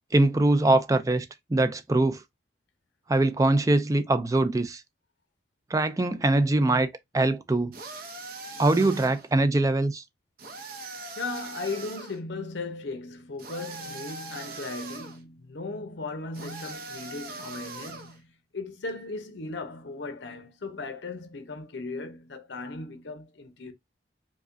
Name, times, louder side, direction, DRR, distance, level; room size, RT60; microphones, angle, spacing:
voice 1, 0.1-2.2 3.1-4.8 5.7-7.8 8.6-10.0, right 2 dB, 20° right, 0.4 m, -23 dB
sound 1, 7.7-9.3 10.4-12.2 13.4-15.2 16.3-18.2, right 3 dB, 55° right, 0.7 m, -41 dB
voice 2, 11.2-23.7, left 3 dB, 75° left, 0.7 m, -37 dB
4.8 x 2.2 x 2.6 m
head